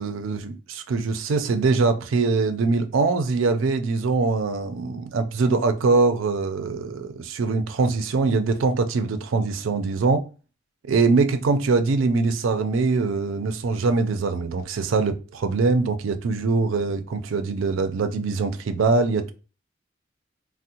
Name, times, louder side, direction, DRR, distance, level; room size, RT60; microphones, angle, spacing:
voice 1, 0.0-10.2 10.9-19.3, right 4 dB, 80° right, 0.4 m, -23 dB
3.5 x 2.1 x 2.7 m
head